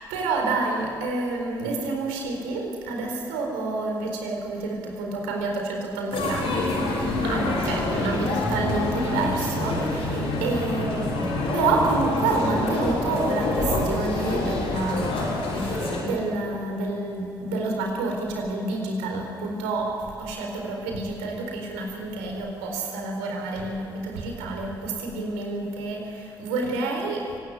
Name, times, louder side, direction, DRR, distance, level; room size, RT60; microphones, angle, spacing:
voice 1, 0.1-11.3 11.5-27.3, right 3 dB, 75° right, 1 dB, 4.3 m, -28 dB
sound 1, 6.1-16.0, left 2 dB, 65° left, 6.7 m, -26 dB
24.5 x 18.5 x 9.7 m, 2.7 s
figure-of-eight pair, 40°, 11 cm